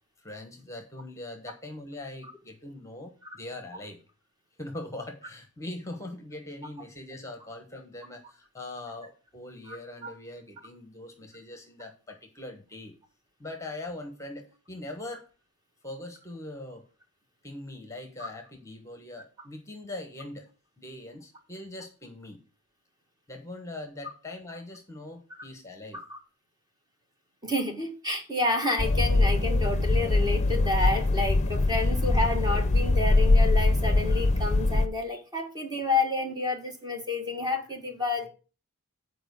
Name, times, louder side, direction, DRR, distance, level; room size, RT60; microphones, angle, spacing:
voice 1, 0.2-4.0 4.6-12.9 13.4-15.3 15.8-16.9 17.4-20.5 20.8-22.4 23.3-26.0 31.7-31.9, left 2 dB, 15° left, 1.2 m, -41 dB
voice 2, 27.4-38.3, left 2 dB, 20° right, 1.5 m, -29 dB
sound 1, 28.8-34.9, left 2 dB, 30° left, 0.6 m, -23 dB
8.8 x 4.7 x 6.9 m
head